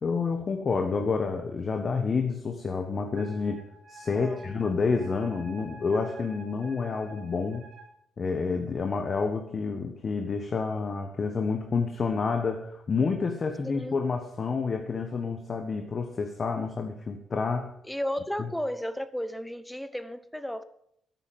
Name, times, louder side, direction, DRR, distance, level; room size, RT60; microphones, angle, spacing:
voice 1, 0.0-7.6 8.2-17.7 18.4-18.5, left 4 dB, 35° left, 1.4 m, -29 dB
Wind instrument woodwind instrument, 3.2-7.9, right 2 dB, 60° right, 3.2 m, -49 dB
voice 2, 4.1-4.5 13.7-14.0 17.9-20.6, equal, 5° left, 0.9 m, -34 dB
13.0 x 10.0 x 7.7 m
cardioid pair, 125°, 0 cm